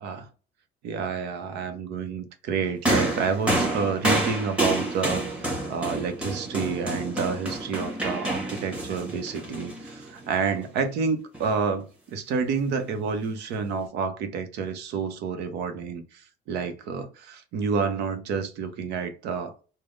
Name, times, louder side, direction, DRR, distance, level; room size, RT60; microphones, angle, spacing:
voice 1, 0.8-16.0 16.5-19.5, right 5 dB, 85° right, 0.7 m, -29 dB
sound 1, 2.8-10.4 11.3-11.5, right 1 dB, 5° right, 1.2 m, -28 dB
3.4 x 2.2 x 3.7 m
cardioid pair, 110°, 17 cm